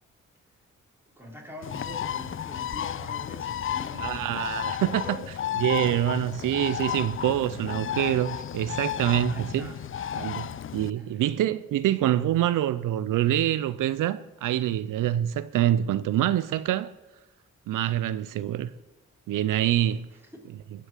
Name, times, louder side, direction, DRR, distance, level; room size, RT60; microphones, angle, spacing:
voice 1, 1.2-5.2 9.3-10.7 10.9-11.1, left 1 dB, 5° right, 4.2 m, -44 dB
Bird, 1.6-10.9, left 9 dB, 40° left, 0.4 m, -33 dB
voice 2, 4.0-5.2 5.6-9.7 10.2-16.9 17.7-18.7 19.3-20.1, right 12 dB, 90° right, 0.5 m, -26 dB
16.5 x 6.7 x 7.4 m
cardioid pair, 65°, 31 cm